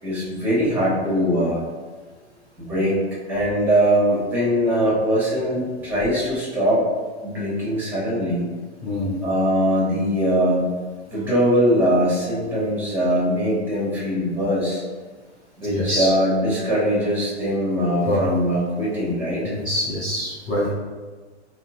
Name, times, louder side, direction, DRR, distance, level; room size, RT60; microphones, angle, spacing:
voice 1, 0.0-1.6 2.7-3.0 3.3-6.8 7.2-8.4 9.2-10.7 11.1-14.8 15.6-19.5, equal, 5° right, -6 dB, 1.1 m, -21 dB
voice 2, 8.8-9.2 15.7-16.1 18.1-18.4 19.4-20.7, left 1 dB, 10° left, -7 dB, 0.4 m, -24 dB
3.7 x 2.1 x 2.6 m, 1.4 s
hypercardioid pair, 105°, 34 cm